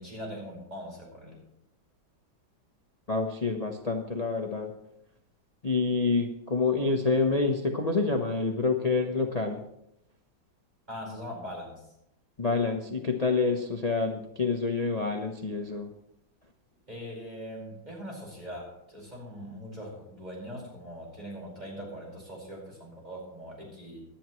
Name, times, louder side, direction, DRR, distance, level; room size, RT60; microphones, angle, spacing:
voice 1, 0.0-1.4 10.9-11.8 16.9-24.0, equal, 20° right, -3 dB, 5.0 m, -41 dB
voice 2, 3.1-4.7 5.6-9.6 12.4-15.9, left 4 dB, 50° left, 3 dB, 0.4 m, -27 dB
18.5 x 11.5 x 3.1 m, 0.81 s
omnidirectional pair, 2.2 m